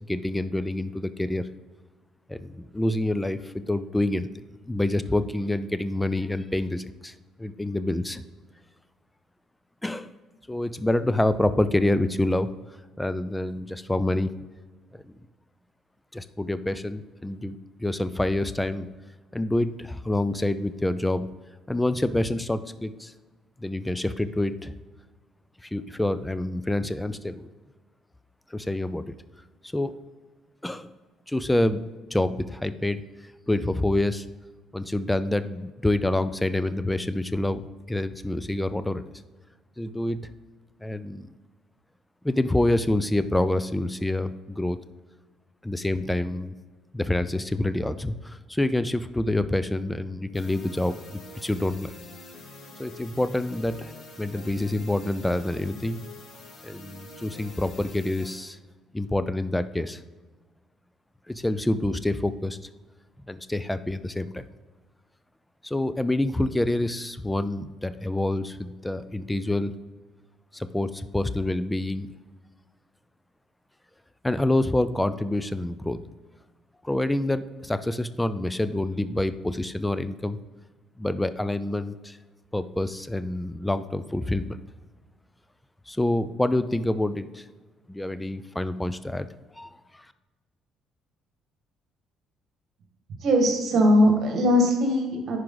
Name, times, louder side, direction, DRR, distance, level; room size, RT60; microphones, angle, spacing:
voice 1, 0.0-1.5 2.3-4.3 4.7-7.1 7.4-8.2 9.8-10.1 10.5-12.5 13.0-14.3 15.0-15.1 16.1-18.9 19.3-21.3 21.7-23.1 23.6-24.7 25.6-27.5 28.5-29.1 29.7-29.9 30.6-30.9 31.3-31.8 32.1-33.0 33.5-34.3 34.7-37.6 37.9-39.0 39.8-40.3 40.8-41.3 42.2-44.8 45.6-46.5 46.9-51.9 52.8-53.9 54.2-56.0 56.6-58.6 58.9-60.0 61.3-62.6 63.3-64.4 65.6-69.7 70.5-72.1 74.2-76.0 76.8-80.4 81.0-82.2 82.5-84.6 85.9-87.4 87.9-89.3 89.6-90.1, left 1 dB, 10° left, 13 dB, 0.5 m, -27 dB
sound 1, 50.3-58.3, left 2 dB, 60° left, 2.1 m, -46 dB
voice 2, 93.2-95.4, equal, 60° right, 2 dB, 2.0 m, -20 dB
10.5 x 4.9 x 4.0 m, 1.3 s
supercardioid pair, 70°, 0 cm